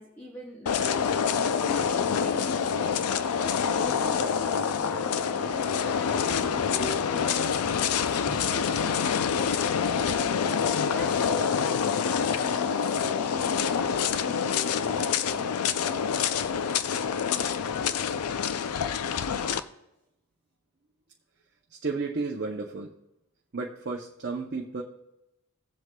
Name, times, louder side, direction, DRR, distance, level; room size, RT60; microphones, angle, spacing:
voice 1, 0.0-10.4 10.9-15.5, left 1 dB, 10° left, 0 dB, 0.8 m, -43 dB
sound 1, 0.7-19.6, left 7 dB, 85° left, 0.5 m, -26 dB
sound 2, 8.2-11.7, right 2 dB, 40° left, 3.6 m, -53 dB
voice 2, 21.8-22.9 23.5-24.8, right 4 dB, 50° right, 0 dB, 0.7 m, -32 dB
17.5 x 7.8 x 2.3 m, 0.91 s
head